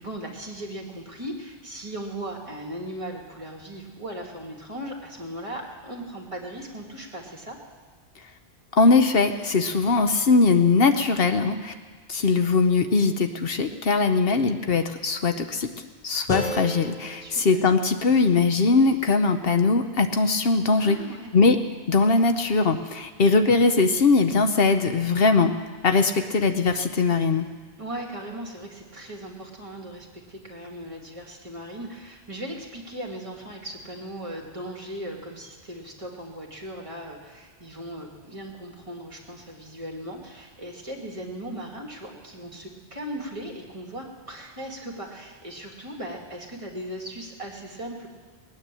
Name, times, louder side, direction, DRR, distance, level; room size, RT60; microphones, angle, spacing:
voice 1, 0.0-7.6 17.2-17.6 20.8-21.3 27.8-48.1, right 1 dB, 30° right, -1 dB, 2.4 m, -38 dB
voice 2, 8.8-11.7 12.1-15.7 16.0-21.0 21.3-21.6 21.9-25.5 25.8-27.5, left 4 dB, 65° left, 7 dB, 1.0 m, -21 dB
sound 1, 16.3-19.4, equal, 45° left, 3.0 m, -36 dB
19.5 x 9.7 x 7.6 m, 1.5 s
omnidirectional pair, 1.1 m